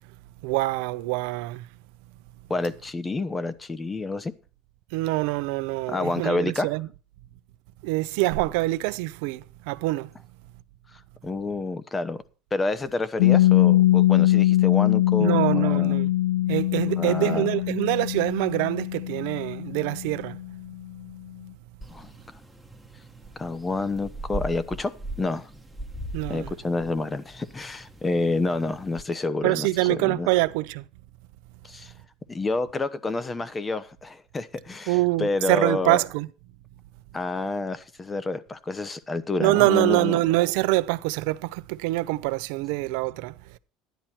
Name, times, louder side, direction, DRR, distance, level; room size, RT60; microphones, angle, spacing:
voice 1, 0.4-1.7 4.9-6.9 7.8-10.1 15.2-16.1 16.5-20.4 26.1-26.5 29.4-30.8 34.9-36.3 39.4-43.6, right 19 dB, 75° right, 0.7 m, -25 dB
voice 2, 2.5-4.3 5.9-6.7 11.2-12.2 12.5-16.0 17.0-17.5 21.9-22.1 23.4-25.5 26.3-30.3 31.6-31.9 32.3-36.0 37.1-40.2, left 3 dB, 15° left, 0.9 m, -29 dB
Piano, 13.2-20.5, left 15 dB, 65° left, 0.8 m, -22 dB
sound 1, 21.8-29.0, right 1 dB, 5° right, 1.3 m, -40 dB
12.5 x 10.5 x 4.4 m
supercardioid pair, 130°, 0 cm